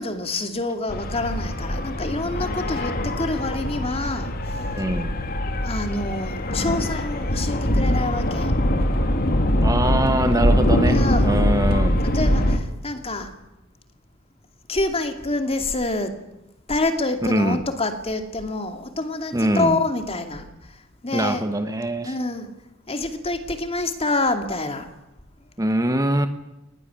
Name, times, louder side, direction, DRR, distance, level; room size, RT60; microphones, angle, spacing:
voice 1, 0.0-4.3 5.6-8.5 10.9-11.4 12.1-13.3 14.7-16.1 16.7-20.4 21.0-21.5 22.0-22.5 22.9-24.9, left 2 dB, 30° left, 7 dB, 2.5 m, -27 dB
sound 1, 0.9-12.6, left 1 dB, 45° left, 2.4 m, -22 dB
voice 2, 4.7-5.1 9.6-12.0 17.2-17.6 19.3-19.8 21.1-22.1 25.6-26.3, right 1 dB, 15° right, 9 dB, 1.2 m, -23 dB
20.0 x 19.0 x 10.0 m, 0.96 s
head